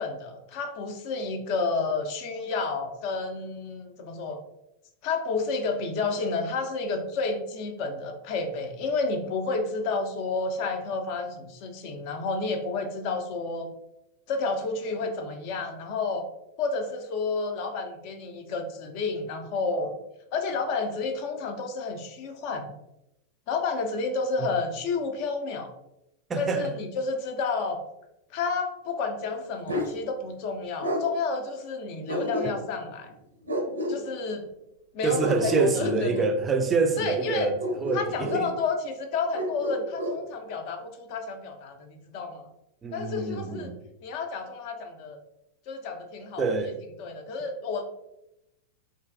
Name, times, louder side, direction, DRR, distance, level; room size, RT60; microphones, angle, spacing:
voice 1, 0.0-4.4 5.0-13.7 14.3-16.3 16.6-19.9 20.3-22.7 23.5-25.7 26.4-27.8 28.3-33.1 33.9-34.5 34.9-36.2 37.0-37.5 37.9-42.5 42.9-43.7 44.0-45.2 45.7-46.4 47.0-47.8, left 4 dB, 45° left, 0.5 m, -30 dB
voice 2, 26.3-26.8 35.0-38.5 42.8-43.8 46.4-46.7, right 4 dB, 20° right, 0.4 m, -26 dB
Bark, 29.7-29.9 30.8-31.0 32.1-32.8 33.5-34.0 35.2-36.3 37.6-38.5 39.3-40.2, equal, 80° right, 0.5 m, -30 dB
3.8 x 2.4 x 2.5 m
figure-of-eight pair, 90°, 0 cm